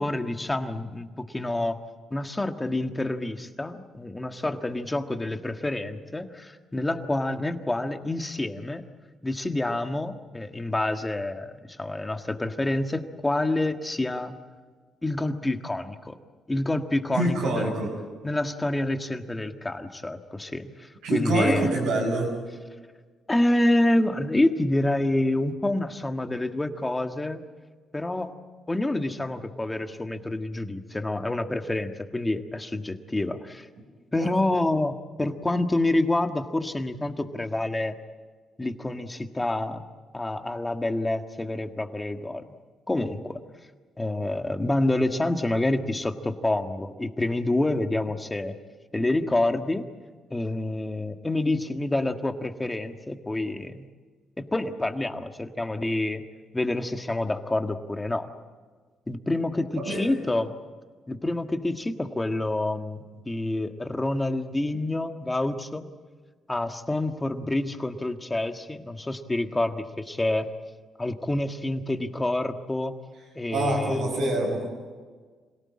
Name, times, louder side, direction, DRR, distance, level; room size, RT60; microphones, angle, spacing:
voice 1, 0.0-1.8 2.1-8.8 9.2-14.4 15.0-16.2 16.5-17.7 18.2-21.7 23.3-27.4 27.9-28.3 28.7-33.7 34.1-38.0 38.6-39.8 40.1-42.4 42.9-43.4 44.0-48.5 48.9-49.9 50.3-53.9 54.4-56.2 56.5-58.3 59.1-60.5 61.1-65.9 66.5-70.5 71.0-73.0 73.3-74.1, left 2 dB, 15° left, 6 dB, 1.7 m, -27 dB
voice 2, 17.1-17.9 21.0-22.3 34.2-34.5 59.7-60.1 73.5-74.7, right 2 dB, 90° right, -4 dB, 5.7 m, -26 dB
26.5 x 17.5 x 8.8 m, 1.5 s
cardioid pair, 90°, 0 cm